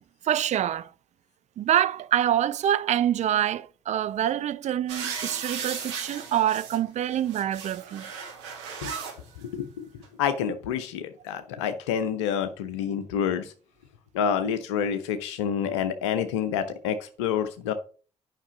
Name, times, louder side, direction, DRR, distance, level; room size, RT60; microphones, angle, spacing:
voice 1, 0.2-0.9 1.6-8.1, right 11 dB, 50° right, 0.6 m, -26 dB
sound 1, 4.9-6.8 7.2-9.2 10.0-10.1, right 6 dB, 80° right, 2.0 m, -36 dB
voice 2, 9.4-9.9 10.2-13.5 14.1-17.7, left 8 dB, 75° left, 0.7 m, -28 dB
9.8 x 5.8 x 5.0 m
figure-of-eight pair, 45°, 15 cm